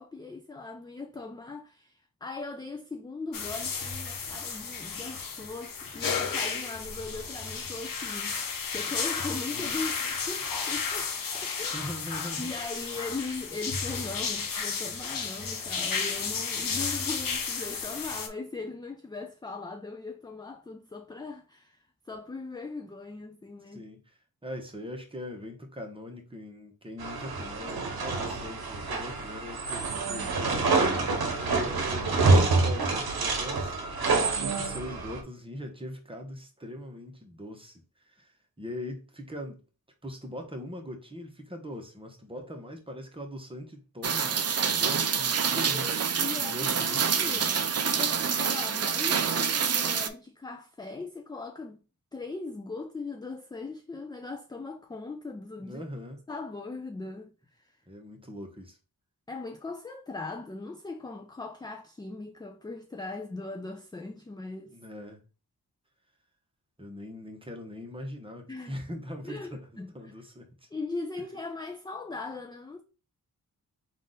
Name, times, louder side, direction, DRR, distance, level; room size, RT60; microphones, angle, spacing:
voice 1, 0.0-11.9 12.4-23.8 45.6-51.8 52.1-55.8 56.3-57.3 57.6-57.7 59.3-64.8 68.5-68.7 69.2-69.9 70.7-72.8, left 3 dB, 10° left, 0.4 m, -39 dB
sound 1, 3.3-18.3, left 5 dB, 60° left, 0.8 m, -33 dB
voice 2, 11.7-12.5 23.7-33.7 34.2-39.6 40.0-45.9 46.4-47.5 55.6-56.2 57.9-58.8 64.7-65.3 66.8-70.7, left 1 dB, 15° right, 1.0 m, -41 dB
sound 2, 27.0-35.2, right 3 dB, 75° right, 0.9 m, -27 dB
Rain, 44.0-50.1, right 7 dB, 45° right, 0.5 m, -27 dB
3.7 x 2.6 x 3.8 m
cardioid pair, 75°, 37 cm